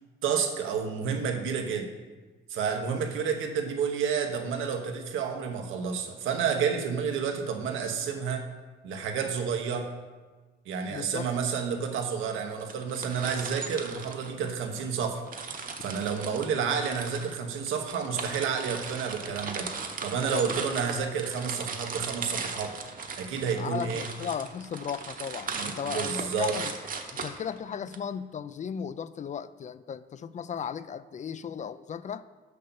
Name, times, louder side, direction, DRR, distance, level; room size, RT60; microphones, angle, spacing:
voice 1, 0.2-1.9 2.5-8.4 8.8-9.9 10.6-15.2 15.8-19.7 20.0-22.7 23.2-24.1 25.6-26.6, right 6 dB, 85° right, 4 dB, 1.1 m, -30 dB
voice 2, 10.9-11.3 20.3-20.4 23.5-26.7 27.1-32.2, left 7 dB, 40° left, 15 dB, 0.4 m, -36 dB
sound 1, 12.6-14.8 15.3-28.0, right 5 dB, 45° right, 1.0 m, -38 dB
6.6 x 5.6 x 6.9 m, 1.3 s
cardioid pair, 90°, 20 cm